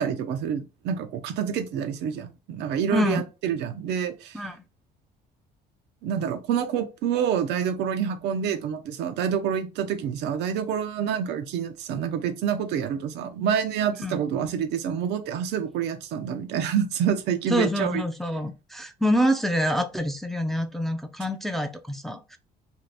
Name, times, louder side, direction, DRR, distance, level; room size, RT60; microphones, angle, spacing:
voice 1, 0.0-4.4 6.0-18.0, right 8 dB, 80° right, 0.6 m, -27 dB
voice 2, 2.9-3.3 4.3-4.6 14.0-14.2 17.5-22.4, equal, ahead, 0.4 m, -26 dB
2.6 x 2.4 x 3.3 m
cardioid pair, 110°, 17 cm